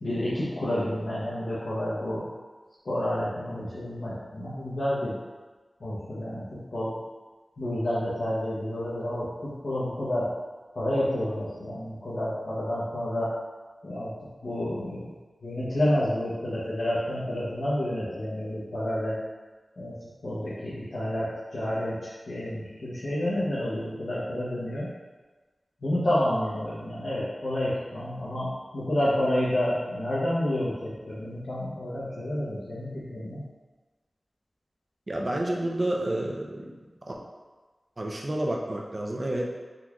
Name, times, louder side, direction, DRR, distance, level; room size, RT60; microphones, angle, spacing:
voice 1, 0.0-2.2 2.8-5.2 5.8-6.9 7.6-10.3 10.7-13.3 13.8-14.1 14.4-15.1 15.4-19.2 19.8-20.0 20.2-24.9 25.8-33.4, left 1 dB, 80° left, -10 dB, 0.7 m, -29 dB
voice 2, 35.1-36.7 37.0-37.1 38.0-39.5, right 1 dB, 45° right, -1 dB, 0.5 m, -29 dB
3.7 x 2.9 x 2.3 m, 1.3 s
wide cardioid pair, 70°, 0 cm